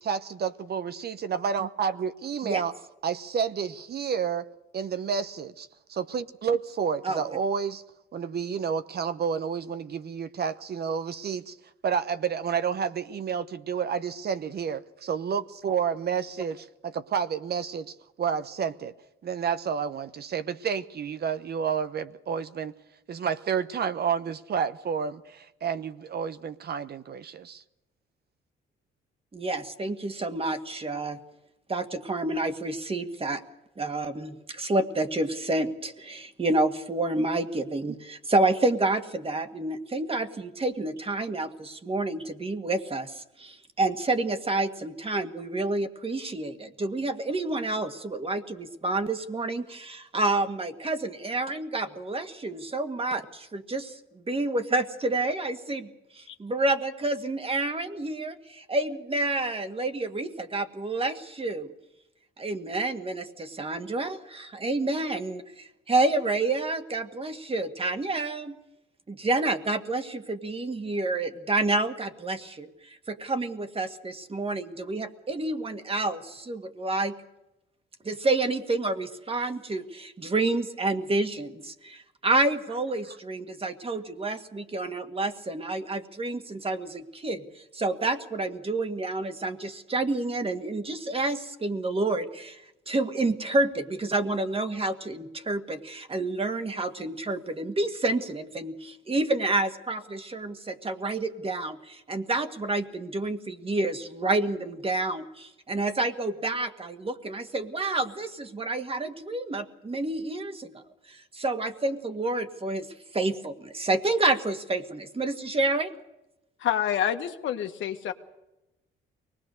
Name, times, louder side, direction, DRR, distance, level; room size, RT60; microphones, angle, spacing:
voice 1, 0.0-2.7 3.0-4.5 4.7-7.8 8.1-11.6 11.8-18.9 19.2-22.7 23.1-27.6, right 7 dB, 55° right, 1.0 m, -30 dB
voice 2, 29.3-31.2 31.7-33.4 33.8-55.9 56.1-61.7 62.4-68.6 69.1-77.2 78.0-92.6 92.9-115.9, right 2 dB, 30° right, 1.9 m, -29 dB
voice 3, 116.6-118.1, left 10 dB, 75° left, 1.5 m, -28 dB
24.0 x 19.5 x 6.6 m
cardioid pair, 90°, 20 cm